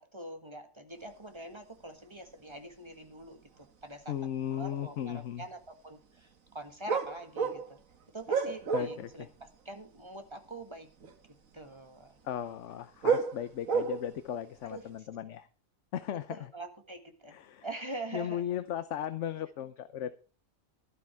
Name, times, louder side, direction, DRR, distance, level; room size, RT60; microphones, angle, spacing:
voice 1, 0.0-4.1 4.5-7.8 8.1-10.9 11.5-12.2 14.6-15.1 16.3-18.6, right 2 dB, 20° right, 6 dB, 1.6 m, -44 dB
sound 1, 3.4-3.5 4.0-4.5 4.9-5.1 6.9-9.1 9.4-9.6 10.6-10.7 11.0-11.3 12.5-14.3 14.8-15.0, right 6 dB, 75° right, 1.8 m, -31 dB
voice 2, 4.1-5.4 8.7-9.3 12.2-15.5 15.9-16.5 17.3-17.7 18.1-20.2, left 10 dB, 65° left, 12 dB, 1.0 m, -36 dB
12.0 x 12.0 x 4.6 m, 0.36 s
omnidirectional pair, 1.4 m